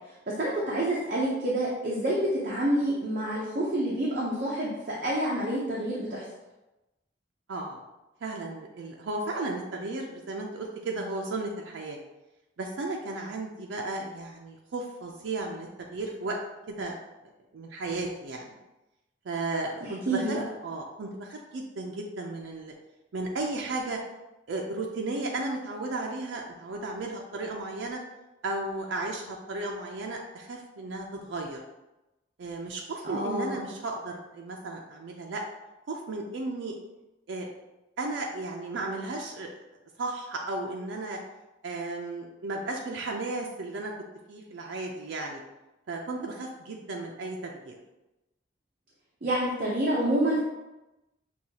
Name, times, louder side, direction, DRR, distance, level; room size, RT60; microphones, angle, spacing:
voice 1, 0.0-6.2 19.8-20.4 33.0-33.7 49.2-50.4, right 1 dB, 50° right, -5 dB, 0.7 m, -28 dB
voice 2, 7.5-7.8 8.2-12.0 12.6-16.4 16.7-16.9 17.5-18.5 19.3-20.4 20.6-22.7 23.1-24.0 24.5-28.0 28.4-31.6 32.4-35.4 35.9-36.8 37.3-37.5 38.0-39.5 40.0-41.2 41.6-43.9 44.3-45.4 45.9-47.8, right 2 dB, 85° right, 0 dB, 0.4 m, -34 dB
6.2 x 2.3 x 2.8 m, 1.0 s
head